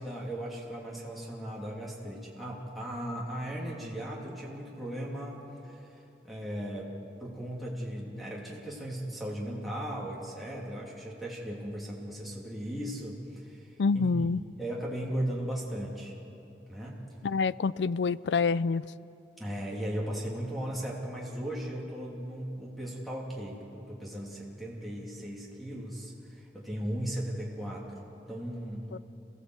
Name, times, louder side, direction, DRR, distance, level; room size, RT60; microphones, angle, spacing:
voice 1, 0.0-6.9 7.2-14.2 14.5-16.1 16.7-17.0 19.4-28.9, right 1 dB, ahead, -5 dB, 2.8 m, -37 dB
voice 2, 13.8-14.4 17.2-18.8 28.9-29.0, left 4 dB, 85° left, 18 dB, 0.4 m, -27 dB
27.5 x 16.0 x 8.0 m, 3.0 s
head